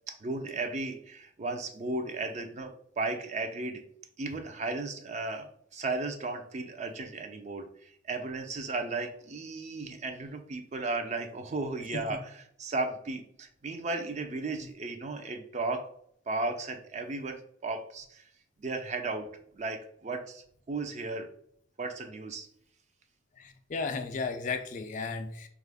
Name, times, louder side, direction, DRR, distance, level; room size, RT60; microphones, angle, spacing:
voice 1, 0.1-3.8 4.2-12.3 12.6-15.9 16.3-18.3 18.6-19.3 19.5-21.3 21.8-22.5, right 3 dB, 35° right, 6 dB, 0.4 m, -35 dB
voice 2, 23.3-25.5, left 4 dB, 40° left, 7 dB, 0.4 m, -35 dB
4.5 x 2.4 x 3.4 m, 0.67 s
head